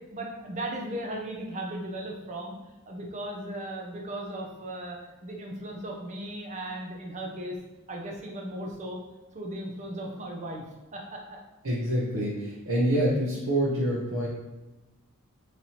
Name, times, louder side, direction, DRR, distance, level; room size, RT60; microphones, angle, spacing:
voice 1, 0.1-2.6 2.9-7.6 7.9-9.0 9.3-10.6 10.9-11.2, right 1 dB, 35° right, 0 dB, 0.6 m, -36 dB
voice 2, 11.6-14.3, right 1 dB, 75° right, -5 dB, 0.8 m, -26 dB
4.2 x 3.2 x 2.8 m, 1.1 s
head